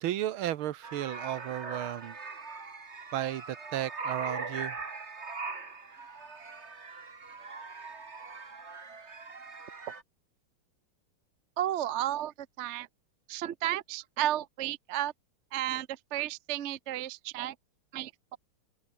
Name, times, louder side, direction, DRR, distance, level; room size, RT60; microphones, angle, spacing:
voice 1, 0.0-2.2 3.1-4.8, right 12 dB, 80° right, 1.7 m, -34 dB
sound 1, 0.8-10.0, right 4 dB, 30° right, 2.3 m, -41 dB
voice 2, 11.6-12.9 13.3-15.1 15.5-17.5 17.9-18.4, right 13 dB, 55° right, 0.7 m, -33 dB
open air
omnidirectional pair, 2.3 m